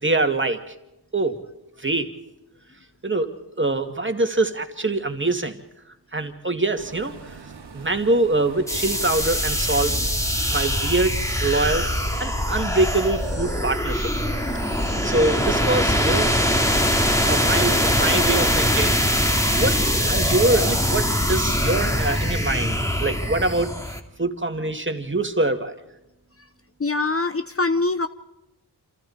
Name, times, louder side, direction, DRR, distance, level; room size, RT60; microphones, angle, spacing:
voice 1, 0.0-0.7 1.1-1.4 1.8-2.1 3.0-3.3 3.6-5.6 6.1-7.4 7.7-10.0 10.5-11.1 11.4-14.1 15.0-16.4 17.2-19.0 19.5-23.8 24.2-25.8, right 2 dB, 30° right, 6 dB, 2.4 m, -24 dB
sound 1, 6.7-15.6, right 4 dB, 75° right, 2.5 m, -42 dB
sound 2, 8.7-24.0, equal, 5° left, 2.6 m, -22 dB
voice 2, 26.8-28.1, left 3 dB, 35° left, 11 dB, 0.9 m, -23 dB
28.5 x 27.0 x 4.4 m, 0.89 s
cardioid pair, 55°, 41 cm